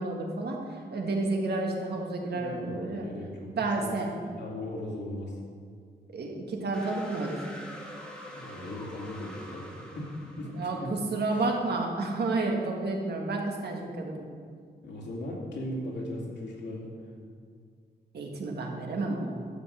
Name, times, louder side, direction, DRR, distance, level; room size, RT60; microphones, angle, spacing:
voice 1, 0.0-3.0 3.5-4.1 6.1-7.5 10.5-14.3 18.1-19.3, right 2 dB, 70° right, 1 dB, 1.7 m, -31 dB
voice 2, 2.3-4.0 4.4-5.4 8.3-10.1 10.4-10.9 11.3-11.4 14.8-16.9, left 1 dB, 85° left, -2 dB, 2.5 m, -38 dB
sound 1, 6.7-11.2, equal, 5° left, 1.4 m, -45 dB
12.0 x 5.4 x 7.8 m, 2.1 s
wide cardioid pair, 165°, 18 cm